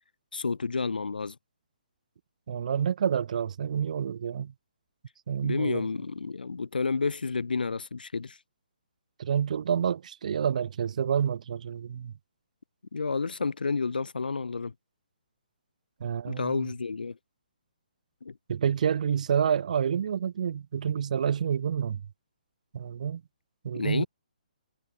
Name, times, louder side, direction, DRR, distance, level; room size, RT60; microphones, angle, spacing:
voice 1, 0.3-1.4 5.4-8.4 12.9-14.7 16.3-17.2 18.2-18.4 23.7-24.1, left 4 dB, 90° left, 0.3 m, -30 dB
voice 2, 2.5-4.5 5.3-5.9 9.2-12.1 16.0-16.6 18.5-22.0 22.7-23.2 23.6-24.1, right 8 dB, 55° right, 0.9 m, -28 dB
hypercardioid pair, 145°, 5 cm